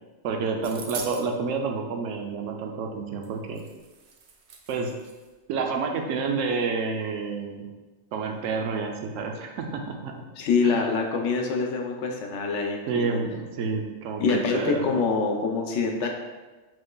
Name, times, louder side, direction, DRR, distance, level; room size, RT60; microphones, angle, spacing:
voice 1, 0.2-3.6 4.7-4.9 5.5-7.7 8.1-10.3 10.6-10.9 12.9-14.8, right 4 dB, 90° right, 3 dB, 0.9 m, -29 dB
sound 1, 0.6-1.3 3.2-3.3 3.5-5.3, right 5 dB, 60° right, 0.7 m, -41 dB
voice 2, 10.4-13.2 14.2-16.1, left 4 dB, 75° left, 2 dB, 0.9 m, -25 dB
5.1 x 3.7 x 2.3 m, 1.2 s
omnidirectional pair, 1.3 m